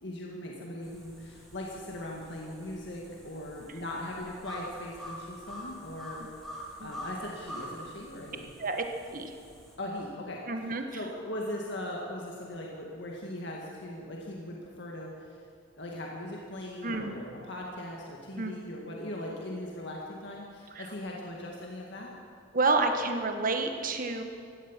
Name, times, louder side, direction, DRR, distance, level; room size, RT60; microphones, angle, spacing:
voice 1, 0.0-6.2 6.8-8.5 9.8-10.4 10.7-15.4 15.8-22.1, left 1 dB, 60° left, -2 dB, 2.0 m, -39 dB
sound 1, 0.8-9.8, equal, ahead, 2.9 m, -46 dB
voice 2, 10.5-11.0 16.8-17.1 18.4-18.6 20.7-20.9 22.5-24.2, right 3 dB, 45° right, 6 dB, 1.3 m, -29 dB
15.5 x 12.0 x 7.5 m, 2.3 s
head